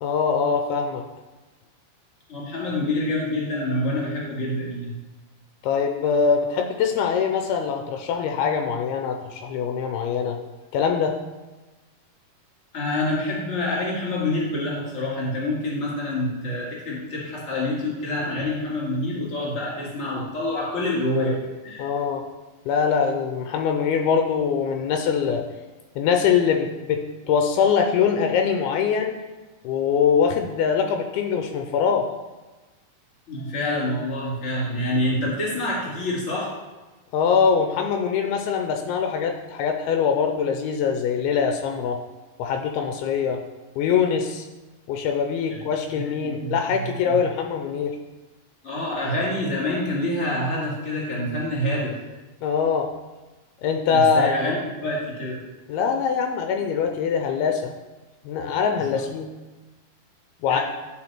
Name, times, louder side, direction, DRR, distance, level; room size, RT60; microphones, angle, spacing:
voice 1, 0.0-1.0 5.6-10.4 10.7-11.2 21.8-22.2 22.7-25.4 26.0-29.1 29.6-32.1 37.1-42.0 42.4-43.4 43.8-44.5 44.9-48.0 52.4-52.9 53.6-54.3 55.7-57.7 58.3-59.3 60.4-60.6, left 6 dB, 85° left, 4 dB, 2.5 m, -23 dB
voice 2, 2.3-5.0 12.7-21.9 33.3-36.5 45.5-45.6 46.0-46.5 46.9-47.2 48.6-51.9 53.9-55.4 58.9-59.1 60.5-60.6, left 1 dB, 25° left, -5 dB, 2.3 m, -27 dB
10.5 x 4.6 x 4.4 m, 1.2 s
omnidirectional pair, 4.5 m